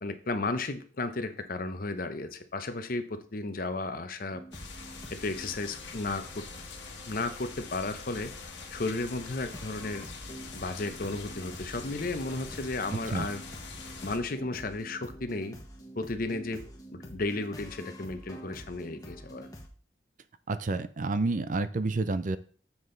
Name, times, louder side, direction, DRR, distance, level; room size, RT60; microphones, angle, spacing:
voice 1, 0.0-4.4 5.1-6.4 7.1-8.3 8.7-10.1 10.5-13.4 14.0-15.6 16.0-16.6 16.9-19.5, left 2 dB, 50° left, 9 dB, 0.8 m, -34 dB
sound 1, 4.3-19.7, equal, 20° left, 1.3 m, -47 dB
sound 2, 4.5-14.2, left 4 dB, 65° left, 1.6 m, -44 dB
voice 2, 20.5-22.4, right 3 dB, 45° right, 13 dB, 0.5 m, -29 dB
7.1 x 6.2 x 3.8 m, 0.42 s
head